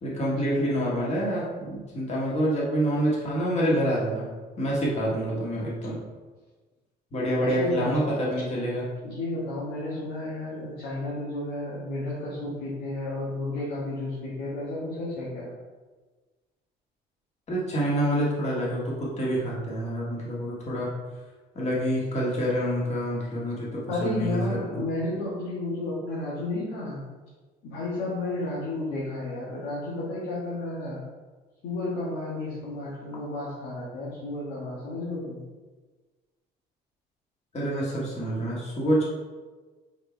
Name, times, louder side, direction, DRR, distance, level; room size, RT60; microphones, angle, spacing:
voice 1, 0.0-4.3 4.6-6.0 7.1-8.9 17.5-20.9 21.6-24.6 37.5-39.0, equal, 40° left, -5 dB, 1.8 m, -27 dB
voice 2, 7.4-8.3 9.0-15.5 23.9-27.0 27.6-31.0 31.6-35.4, left 2 dB, 85° left, -7 dB, 1.6 m, -32 dB
4.9 x 4.5 x 4.6 m, 1.3 s
cardioid pair, 110°, 17 cm